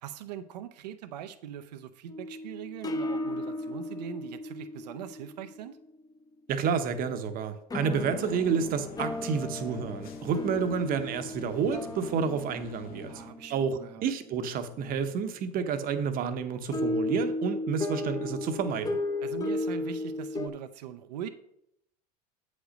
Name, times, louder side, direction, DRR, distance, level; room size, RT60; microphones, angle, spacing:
voice 1, 0.0-5.8 13.1-14.1 19.2-21.3, right 9 dB, 85° right, 10 dB, 0.7 m, -41 dB
sound 1, 2.1-5.9 7.7-13.9 16.7-20.5, left 2 dB, 15° left, 0.8 m, -35 dB
voice 2, 6.5-13.1 13.5-19.0, right 6 dB, 45° right, 9 dB, 0.9 m, -30 dB
sound 2, 7.9-13.3, left 6 dB, 45° left, 1.1 m, -48 dB
8.0 x 5.2 x 5.1 m, 0.75 s
supercardioid pair, 105°, 21 cm